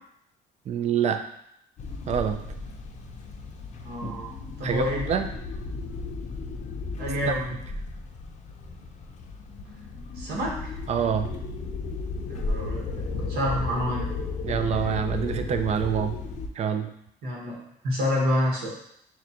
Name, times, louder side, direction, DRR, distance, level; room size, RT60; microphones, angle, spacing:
voice 1, 0.7-1.2 2.1-2.4 4.6-5.3 10.9-11.3 14.4-16.2 16.6-16.9, right 8 dB, 40° right, 8 dB, 0.4 m, -26 dB
sound 1, 1.8-16.5, left 3 dB, 45° left, 0.6 m, -34 dB
voice 2, 3.8-4.3 4.6-5.1 7.0-7.6 10.2-10.6 12.3-12.8 13.1-14.1 14.8-14.9 17.2-17.6 17.8-18.7, equal, 70° right, -3 dB, 1.4 m, -27 dB
6.4 x 2.3 x 2.9 m, 0.74 s
cardioid pair, 110°, 17 cm